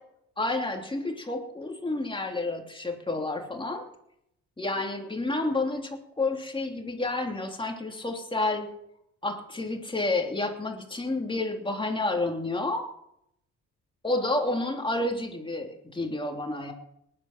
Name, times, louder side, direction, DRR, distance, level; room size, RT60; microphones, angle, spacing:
voice 1, 0.4-3.9 4.6-8.7 9.2-12.9 14.0-16.7, left 2 dB, 15° left, 2 dB, 3.0 m, -30 dB
19.0 x 11.0 x 6.1 m, 0.77 s
cardioid pair, 90°, 30 cm